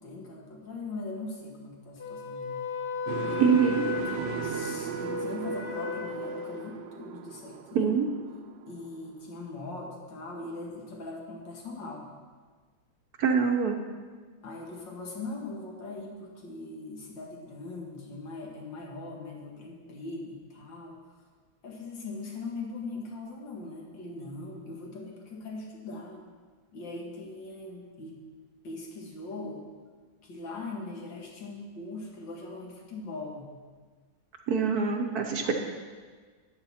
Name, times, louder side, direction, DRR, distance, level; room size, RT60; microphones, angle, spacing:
voice 1, 0.0-2.7 3.3-3.5 4.1-7.9 8.7-12.1 14.4-21.1 21.6-26.2 26.7-28.2 28.6-29.7 30.2-33.5 35.4-35.5, left 3 dB, 70° left, -1 dB, 2.3 m, -40 dB
Wind instrument woodwind instrument, 2.0-6.7, left 4 dB, 35° left, 1.0 m, -35 dB
sound 1, 3.1-9.1, right 8 dB, 80° right, 1.4 m, -37 dB
voice 2, 3.4-3.8 7.7-8.1 13.2-13.8 34.5-35.5, right 6 dB, 60° right, 3 dB, 1.1 m, -24 dB
12.5 x 8.6 x 4.3 m, 1.5 s
omnidirectional pair, 2.1 m